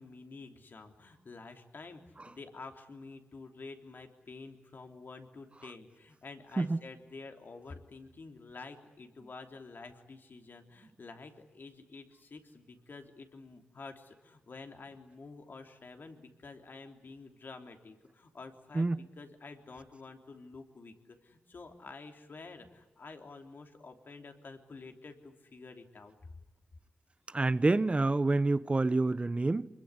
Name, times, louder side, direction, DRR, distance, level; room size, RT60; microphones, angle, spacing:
voice 1, 0.0-26.1, left 3 dB, 60° left, 3.2 m, -49 dB
voice 2, 27.3-29.7, right 2 dB, 30° right, 0.9 m, -27 dB
25.5 x 21.5 x 9.8 m
cardioid pair, 60°, 4 cm